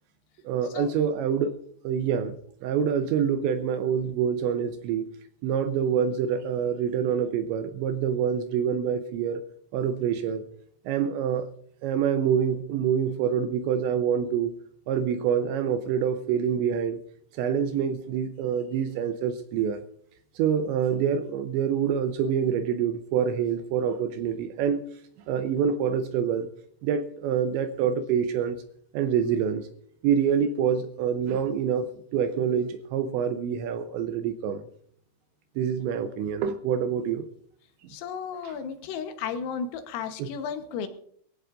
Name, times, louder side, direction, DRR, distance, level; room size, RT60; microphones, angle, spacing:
voice 1, 0.5-1.5 1.8-2.4 2.6-5.1 5.4-9.4 9.7-10.4 10.9-11.5 11.8-14.5 14.9-17.0 17.3-19.8 20.4-24.8 25.3-26.5 26.8-28.6 28.9-29.7 30.0-34.6 35.6-37.3 38.4-38.6 40.2-40.3, right 7 dB, 80° right, 8 dB, 2.8 m, -26 dB
voice 2, 37.9-40.9, left 6 dB, 85° left, 7 dB, 3.8 m, -34 dB
23.0 x 15.5 x 2.5 m, 0.63 s
omnidirectional pair, 5.8 m